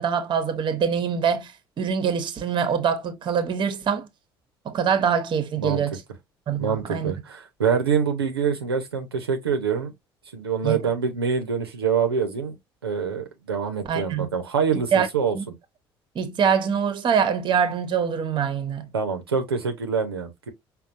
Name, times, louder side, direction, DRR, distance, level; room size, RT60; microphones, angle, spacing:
voice 1, 0.0-1.5 1.8-4.1 4.6-6.0 6.5-7.1 10.6-10.8 13.9-14.3 14.9-15.1 15.3-15.4 16.1-18.9, right 7 dB, 40° right, 0.9 m, -24 dB
voice 2, 6.6-9.9 10.3-12.6 12.8-15.5 18.9-20.5, right 6 dB, 85° right, 0.7 m, -25 dB
5.2 x 2.2 x 2.5 m
figure-of-eight pair, 55°, 13 cm